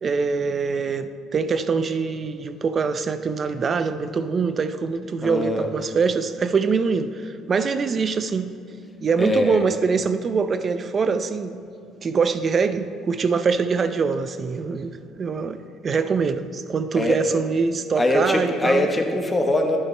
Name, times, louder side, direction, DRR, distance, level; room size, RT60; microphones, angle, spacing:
voice 1, 0.0-8.5 9.0-11.6 12.0-15.6 15.8-18.9, right 5 dB, 40° right, 11 dB, 0.5 m, -24 dB
voice 2, 5.2-5.7 9.2-9.6 16.9-17.2 18.0-19.8, left 1 dB, 20° left, 3 dB, 1.2 m, -22 dB
11.0 x 9.1 x 3.3 m, 2.4 s
supercardioid pair, 90°, 0 cm